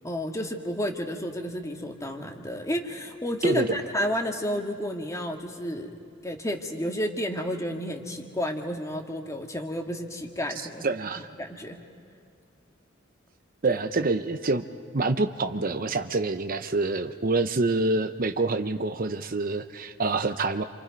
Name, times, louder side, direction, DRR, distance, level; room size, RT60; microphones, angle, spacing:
voice 1, 0.0-5.9 6.2-10.8 11.4-11.8 13.6-13.8, equal, 15° left, 4 dB, 1.8 m, -31 dB
voice 2, 10.8-11.3 13.6-14.6 14.9-20.6, right 3 dB, 45° right, 9 dB, 0.8 m, -26 dB
29.0 x 27.0 x 5.2 m, 2.4 s
head